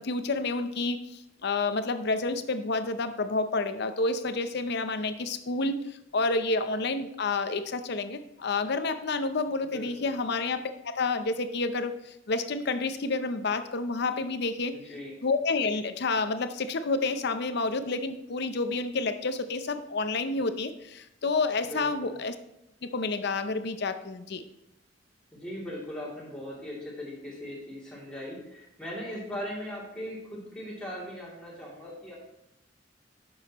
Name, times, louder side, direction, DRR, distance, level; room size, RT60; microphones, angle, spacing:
voice 1, 0.0-14.7 15.2-22.3 22.8-24.4, left 3 dB, 60° left, 10 dB, 0.6 m, -29 dB
voice 2, 9.6-10.1 14.7-15.1 21.6-22.2 25.3-32.2, left 1 dB, 5° left, -6 dB, 2.8 m, -39 dB
10.5 x 6.4 x 3.0 m, 0.85 s
head